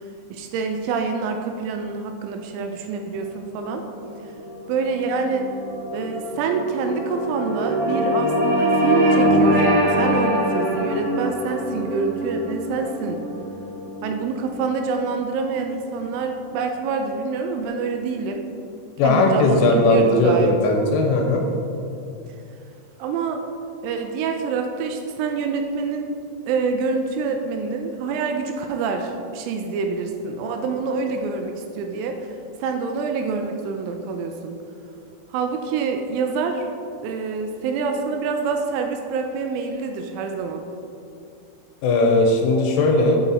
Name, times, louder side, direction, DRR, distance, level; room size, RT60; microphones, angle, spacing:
voice 1, 0.3-3.8 4.2-4.3 4.7-5.5 5.9-13.2 14.0-18.4 19.0-20.5 23.0-23.4 23.8-26.1 26.5-34.6 35.3-36.7 37.0-40.6, right 5 dB, 85° right, 4 dB, 2.9 m, -26 dB
sound 1, 3.4-16.0, equal, 65° right, 2.9 m, -24 dB
voice 2, 19.0-21.4 41.8-43.2, left 2 dB, 85° left, 1 dB, 3.2 m, -18 dB
7.9 x 5.6 x 4.1 m, 2.6 s
omnidirectional pair, 5.8 m